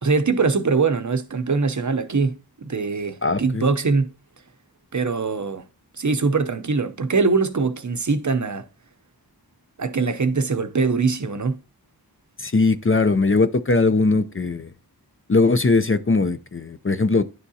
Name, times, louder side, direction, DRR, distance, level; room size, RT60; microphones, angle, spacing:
voice 1, 0.0-4.1 4.9-5.6 6.0-8.6 9.8-11.6, right 4 dB, 50° right, 0.7 m, -22 dB
voice 2, 3.2-3.6 12.4-14.7 15.3-17.2, left 3 dB, 35° left, 0.5 m, -20 dB
10.5 x 3.6 x 2.7 m
wide cardioid pair, 45°, 38 cm